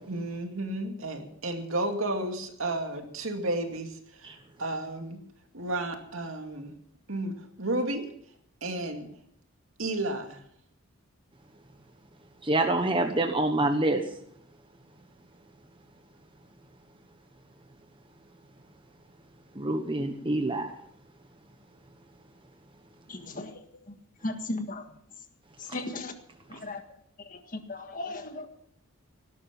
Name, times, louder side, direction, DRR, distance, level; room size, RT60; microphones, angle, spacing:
voice 1, 0.1-4.3 4.6-5.2 5.5-6.7 7.1-8.1 8.6-9.1 9.8-10.4, right 2 dB, 70° right, 4 dB, 2.4 m, -32 dB
voice 2, 12.4-14.0 19.6-20.7, right 2 dB, 25° right, 5 dB, 1.2 m, -26 dB
voice 3, 23.1-23.5 24.2-24.8 25.7-26.1 26.5-26.8 27.3-27.4 27.7-28.5, left 2 dB, 40° left, 6 dB, 1.7 m, -35 dB
18.0 x 12.0 x 6.0 m, 0.69 s
head